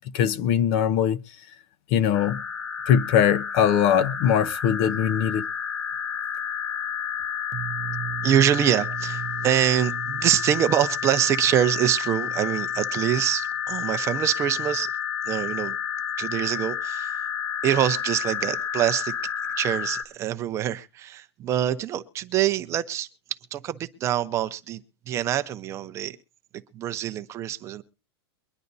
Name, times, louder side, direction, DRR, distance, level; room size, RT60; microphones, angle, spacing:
voice 1, 0.1-1.2 1.9-2.4 2.9-5.5, left 9 dB, 35° left, 0.6 m, -21 dB
sound 1, 2.1-20.0, left 8 dB, 90° left, 2.5 m, -30 dB
voice 2, 7.5-14.9 15.3-15.8 16.2-17.2 17.6-19.1 19.6-23.1 23.5-26.2 26.7-27.8, right 11 dB, 20° right, 0.7 m, -25 dB
23.0 x 10.5 x 2.7 m
supercardioid pair, 165°, 13 cm